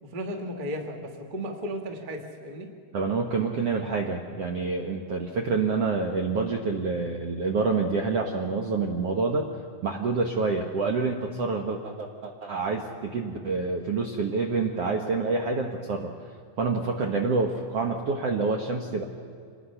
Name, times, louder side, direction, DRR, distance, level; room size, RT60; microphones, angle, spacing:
voice 1, 0.0-2.7, equal, 25° right, 3 dB, 1.1 m, -35 dB
voice 2, 2.9-9.5 9.8-16.1 16.6-19.0, right 4 dB, 60° right, 1 dB, 1.6 m, -27 dB
26.5 x 20.0 x 5.7 m, 2.5 s
omnidirectional pair, 4.4 m